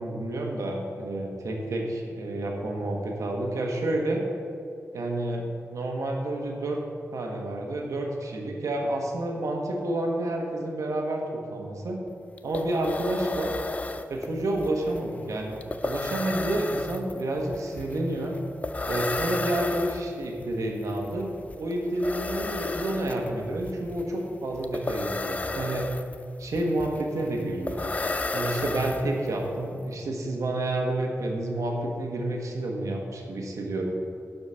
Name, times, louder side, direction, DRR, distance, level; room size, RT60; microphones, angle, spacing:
voice 1, 0.0-4.2 4.9-5.4 5.7-6.8 7.1-12.0 12.4-13.5 14.1-18.4 18.8-21.3 21.6-25.9 26.4-27.9 28.3-33.9, right 1 dB, 85° right, 0 dB, 1.4 m, -29 dB
sound 1, 12.1-12.2 12.4-29.5, left 2 dB, 25° left, 0.4 m, -33 dB
11.5 x 5.2 x 5.7 m, 2.5 s
wide cardioid pair, 130°, 5 cm